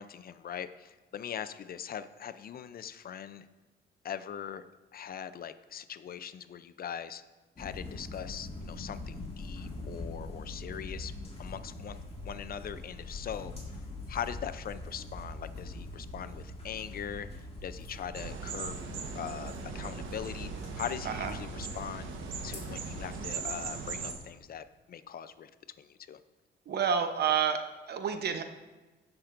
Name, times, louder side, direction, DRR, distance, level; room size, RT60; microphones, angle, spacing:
voice 1, 0.0-3.5 4.0-4.6 4.9-7.2 7.6-11.1 11.4-12.0 12.2-13.5 14.1-18.8 19.1-20.5 20.8-22.1 22.4-25.5 25.8-26.2, left 8 dB, 50° left, 12 dB, 0.5 m, -41 dB
sound 1, 7.6-23.2, left 2 dB, 30° left, 2.3 m, -43 dB
sound 2, 18.1-24.1, right 5 dB, 80° right, 1.2 m, -39 dB
voice 2, 26.7-28.4, right 7 dB, 55° right, 8 dB, 0.8 m, -29 dB
17.0 x 5.9 x 2.5 m, 1.2 s
cardioid pair, 90°, 20 cm